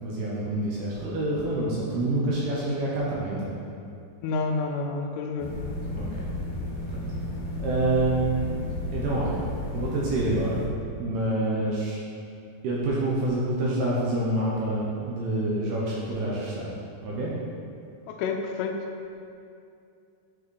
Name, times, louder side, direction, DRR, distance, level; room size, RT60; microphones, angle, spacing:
voice 1, 0.0-3.5 5.9-6.3 6.9-7.0 7.6-8.5 8.9-9.5 9.7-10.6 11.0-12.0 12.6-16.7 17.0-17.3, right 1 dB, 75° right, -6 dB, 2.4 m, -27 dB
voice 2, 4.2-5.6 5.9-6.1 18.1-18.8, left 4 dB, 90° left, 3 dB, 3.1 m, -29 dB
sound 1, 5.4-10.7, left 1 dB, 75° left, 2.5 m, -33 dB
8.9 x 4.7 x 4.8 m, 2.5 s
omnidirectional pair, 5.6 m